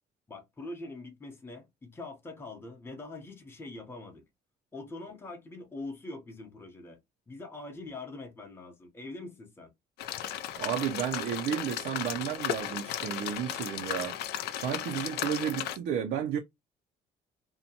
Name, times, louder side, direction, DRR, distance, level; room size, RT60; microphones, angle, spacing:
voice 1, 0.3-4.2 4.7-7.0 7.3-9.7, left 2 dB, 15° left, 0.8 m, -43 dB
sound 1, 10.0-15.8, left 11 dB, 75° left, 0.4 m, -35 dB
voice 2, 10.6-14.2 14.5-16.4, right 9 dB, 70° right, 0.5 m, -32 dB
2.7 x 2.2 x 2.8 m
cardioid pair, 110°, 17 cm